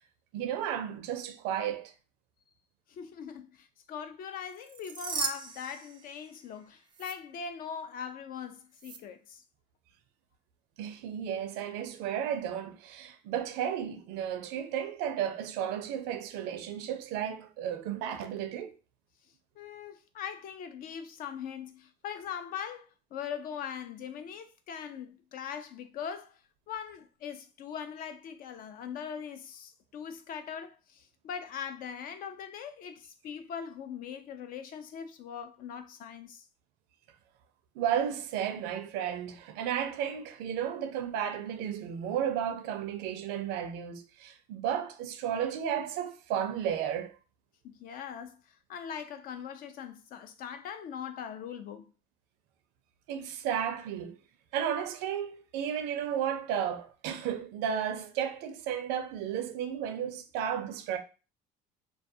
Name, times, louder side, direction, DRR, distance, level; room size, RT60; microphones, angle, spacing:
voice 1, 0.3-1.9 10.8-18.7 37.8-47.2 53.1-54.2 54.5-61.0, right 9 dB, 85° right, 0.5 m, -33 dB
voice 2, 2.9-9.4 19.6-26.4 26.7-36.5 47.6-51.9, left 7 dB, 60° left, 0.4 m, -41 dB
sound 1, 4.5-6.6 6.9-7.1 8.8-9.0, right 6 dB, 25° right, 0.4 m, -37 dB
2.3 x 2.3 x 2.6 m
supercardioid pair, 90°, 17 cm